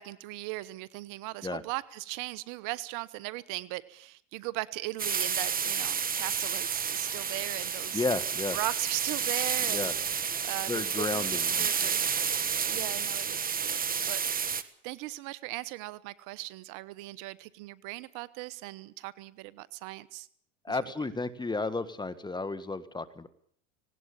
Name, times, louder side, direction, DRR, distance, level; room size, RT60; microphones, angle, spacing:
voice 1, 0.0-8.0 8.5-9.9 10.4-11.3 11.6-12.0 12.7-20.3 20.7-20.8, right 19 dB, 60° right, 19 dB, 1.1 m, -38 dB
sound 1, 5.0-14.6, right 7 dB, 25° right, 1.6 m, -30 dB
voice 2, 7.9-8.6 9.7-9.9 10.7-11.7 20.6-23.3, left 3 dB, 10° left, 12 dB, 1.7 m, -32 dB
19.0 x 18.0 x 8.8 m, 0.62 s
hypercardioid pair, 95°, 36 cm